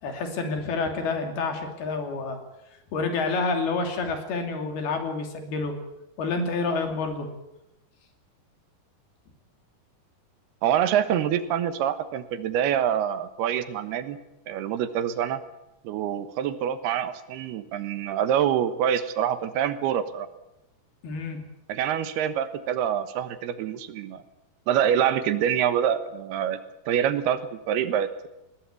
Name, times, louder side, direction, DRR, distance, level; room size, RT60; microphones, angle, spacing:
voice 1, 0.0-2.4 2.9-5.8 6.2-7.3 21.0-21.4, left 3 dB, 75° left, 4 dB, 4.8 m, -28 dB
voice 2, 10.6-14.2 14.5-15.4 15.8-20.3 21.7-24.2 24.7-26.6 26.9-28.3, right 9 dB, 90° right, 11 dB, 3.2 m, -26 dB
20.5 x 18.0 x 8.4 m, 0.92 s
omnidirectional pair, 4.5 m